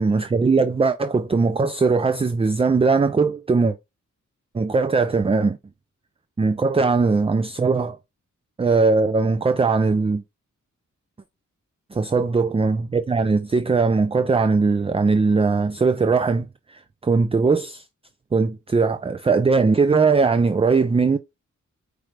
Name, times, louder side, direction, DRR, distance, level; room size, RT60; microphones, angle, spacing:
voice 1, 0.0-3.8 4.5-5.6 6.4-8.0 8.6-10.2 11.9-17.8 18.3-21.2, right 4 dB, 20° right, 0.4 m, -20 dB
4.9 x 3.2 x 3.2 m
cardioid pair, 60°, 31 cm